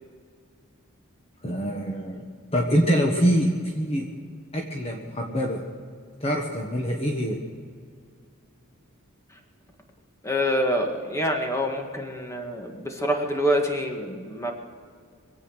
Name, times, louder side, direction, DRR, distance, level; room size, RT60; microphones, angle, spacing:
voice 1, 1.4-2.2 2.5-4.1 4.5-5.6 6.2-7.4, equal, 30° left, 0 dB, 1.4 m, -24 dB
voice 2, 10.2-14.5, equal, 15° left, 3 dB, 1.8 m, -26 dB
24.0 x 8.6 x 6.4 m, 2.1 s
head